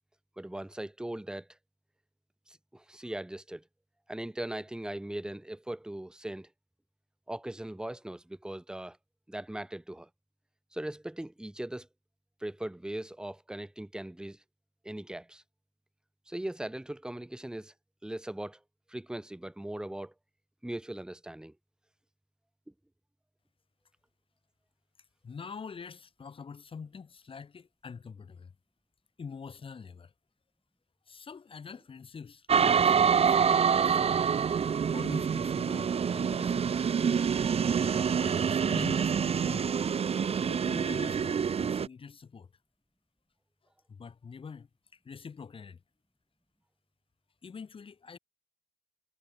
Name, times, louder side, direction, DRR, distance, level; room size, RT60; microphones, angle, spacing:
voice 1, 0.4-1.5 2.5-3.6 4.1-6.5 7.3-9.0 9.3-10.1 10.7-11.9 12.4-14.4 14.8-15.4 16.3-17.7 18.0-18.6 18.9-20.1 20.6-21.5, right 1 dB, 5° right, 1.6 m, -39 dB
voice 2, 25.2-28.5 29.2-30.1 31.1-34.2 34.9-36.7 38.2-39.7 40.4-42.5 43.9-45.8 47.4-48.2, left 5 dB, 30° left, 5.3 m, -45 dB
sound 1, 32.5-41.9, right 7 dB, 35° right, 1.9 m, -26 dB
cardioid pair, 110°, 17 cm